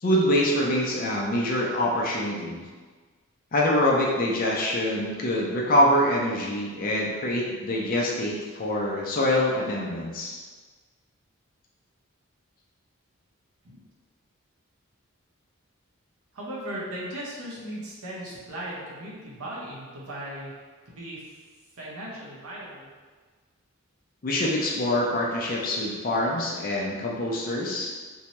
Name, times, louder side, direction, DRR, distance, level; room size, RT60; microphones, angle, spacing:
voice 1, 0.0-2.6 3.5-10.4 24.2-27.9, left 1 dB, 40° left, -2 dB, 0.4 m, -25 dB
voice 2, 16.3-20.5 20.9-21.3 21.7-22.9, right 1 dB, 80° right, -6 dB, 0.8 m, -37 dB
2.7 x 2.2 x 2.9 m, 1.4 s
head